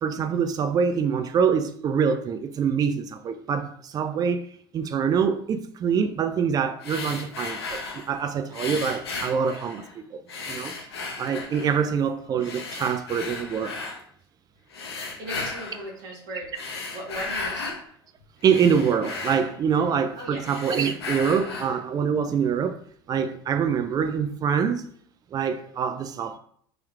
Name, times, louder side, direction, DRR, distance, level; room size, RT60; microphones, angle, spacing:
voice 1, 0.0-4.4 4.7-10.2 10.5-10.7 11.2-13.8 18.4-22.8 23.1-24.9 25.3-26.4, right 7 dB, 30° right, 9 dB, 0.3 m, -25 dB
sound 1, 6.8-8.1 8.5-9.9 10.3-11.8 12.4-14.0 14.7-15.9 16.4-17.8 18.2-20.1 20.4-21.8, left 3 dB, 80° left, 0.5 m, -35 dB
voice 2, 15.2-16.5 16.9-17.7 20.2-20.4, right 1 dB, 60° right, -3 dB, 1.2 m, -37 dB
3.3 x 3.0 x 2.3 m, 0.62 s
hypercardioid pair, 75°, 13 cm